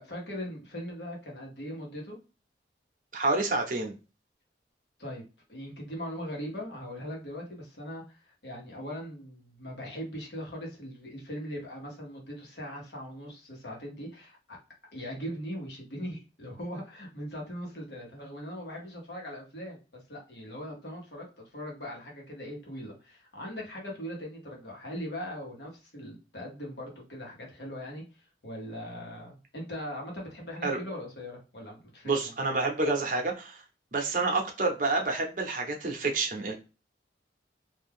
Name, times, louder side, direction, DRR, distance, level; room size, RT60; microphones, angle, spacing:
voice 1, 0.0-2.2 5.0-5.2 5.5-14.6 14.9-32.3, equal, 70° left, -1 dB, 1.2 m, -40 dB
voice 2, 3.1-3.9 30.6-30.8 32.0-33.6 33.9-36.5, right 3 dB, 45° right, 3 dB, 0.7 m, -28 dB
2.6 x 2.3 x 3.4 m, 0.32 s
head